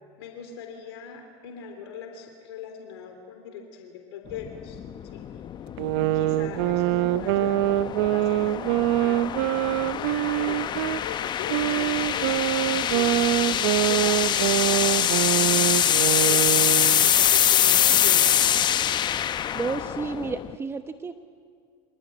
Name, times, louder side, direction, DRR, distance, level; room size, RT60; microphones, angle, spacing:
voice 1, 0.2-4.8 5.1-5.3 6.1-9.4 9.9-12.4 12.9-13.3 13.7-16.6 17.0-18.7, left 7 dB, 70° left, 4 dB, 3.5 m, -40 dB
sound 1, 4.3-20.6, left 10 dB, 35° left, 0.8 m, -24 dB
sound 2, 5.8-11.0 11.5-17.1, right 15 dB, 65° right, 0.7 m, -24 dB
voice 2, 17.7-18.5 19.1-21.1, right 4 dB, 20° right, 8 dB, 1.0 m, -33 dB
26.0 x 17.5 x 9.9 m, 2.2 s
hypercardioid pair, 95°, 14 cm